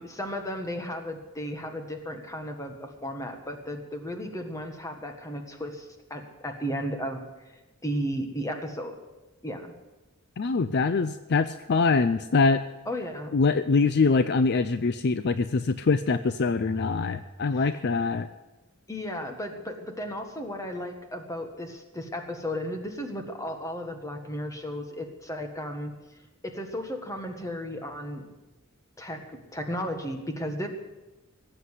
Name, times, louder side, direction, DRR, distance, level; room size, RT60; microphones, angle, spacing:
voice 1, 0.0-9.0 9.4-9.7 12.9-13.4 17.5-17.8 18.9-26.2 26.4-28.3 29.0-30.7, equal, 15° left, 4 dB, 1.6 m, -35 dB
voice 2, 10.4-12.6 13.3-18.3, left 4 dB, 50° left, 12 dB, 0.5 m, -24 dB
17.5 x 7.9 x 8.1 m, 1.1 s
head